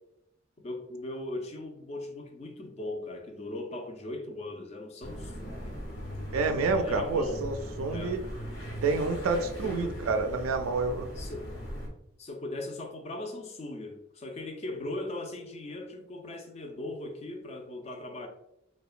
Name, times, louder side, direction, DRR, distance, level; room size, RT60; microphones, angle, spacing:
voice 1, 0.6-5.8 6.7-7.5 7.9-8.2 9.6-10.1 11.1-11.7 12.2-18.3, left 2 dB, 30° left, 0.3 m, -39 dB
sound 1, 5.0-11.9, equal, 90° left, 0.8 m, -39 dB
voice 2, 6.3-8.2 8.8-11.1, right 3 dB, 80° right, 0.3 m, -28 dB
2.8 x 2.1 x 2.4 m
head